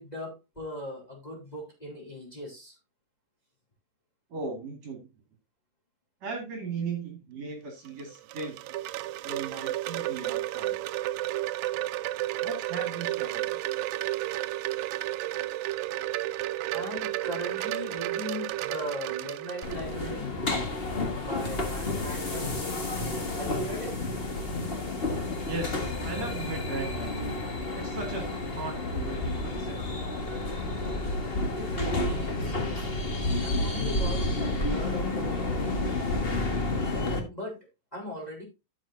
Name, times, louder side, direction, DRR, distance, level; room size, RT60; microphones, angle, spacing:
voice 1, 0.0-2.7 16.7-20.3 21.2-22.6 23.4-24.0 31.6-32.6 33.3-35.8 37.3-37.6 37.9-38.4, equal, 10° left, -2 dB, 3.5 m, -38 dB
voice 2, 4.3-5.1 6.2-8.7 9.2-10.8 12.4-13.6 25.4-27.4 27.7-28.3 28.5-29.8, right 4 dB, 55° right, 3 dB, 3.0 m, -37 dB
Wind chime, 7.9-20.1, right 15 dB, 90° right, 2.3 m, -32 dB
sound 1, 19.6-37.2, left 2 dB, 50° left, 0.6 m, -30 dB
12.5 x 7.4 x 2.7 m, 0.25 s
omnidirectional pair, 3.9 m